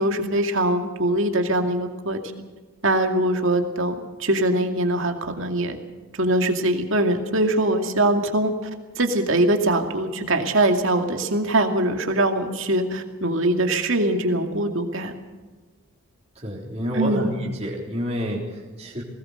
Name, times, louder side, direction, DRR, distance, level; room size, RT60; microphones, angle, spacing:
voice 1, 0.0-2.2 2.8-5.8 6.1-8.5 9.0-15.1 16.9-17.3, right 1 dB, 60° right, 5 dB, 2.4 m, -22 dB
voice 2, 16.4-19.0, equal, 30° right, -2 dB, 3.7 m, -29 dB
21.0 x 19.0 x 6.6 m, 1.3 s
head